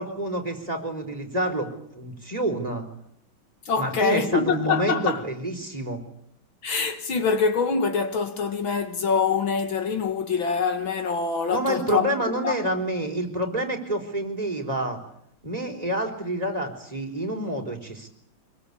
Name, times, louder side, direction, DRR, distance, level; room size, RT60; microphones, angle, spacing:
voice 1, 0.0-1.7 1.9-2.8 3.8-6.0 11.5-15.0 15.4-18.1, right 1 dB, 15° right, 4.6 m, -28 dB
voice 2, 3.7-5.2 6.6-12.1 12.4-12.6, left 5 dB, 65° left, 2.4 m, -24 dB
25.0 x 23.0 x 8.5 m
omnidirectional pair, 2.4 m